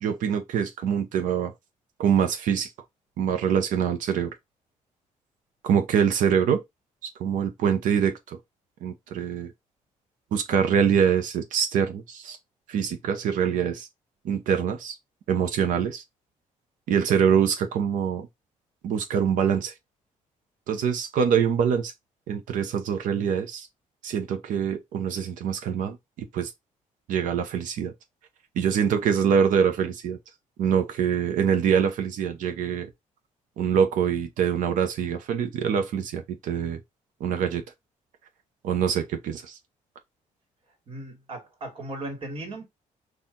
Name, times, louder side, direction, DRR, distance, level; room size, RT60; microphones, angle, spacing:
voice 1, 0.0-1.5 2.0-2.7 3.2-4.3 5.6-6.6 7.0-8.4 8.8-9.5 10.3-12.4 12.7-13.9 14.2-15.0 15.3-16.0 16.9-18.3 18.8-19.7 20.7-21.9 22.3-23.7 24.0-26.5 27.1-27.9 28.5-30.2 30.6-32.9 33.6-36.8 37.2-37.6 38.6-39.6, right 7 dB, 80° right, 0.9 m, -24 dB
voice 2, 40.9-42.6, right 2 dB, 45° right, 1.8 m, -37 dB
4.4 x 2.6 x 3.7 m
cardioid pair, 145°, 13 cm